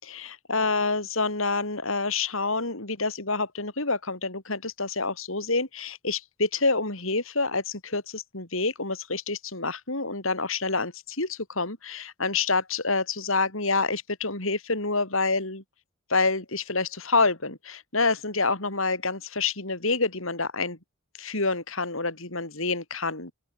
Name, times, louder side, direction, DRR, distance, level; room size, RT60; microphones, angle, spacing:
voice 1, 0.0-15.6 16.1-20.8 21.2-23.3, left 3 dB, 75° left, 5.7 m, -27 dB
open air
head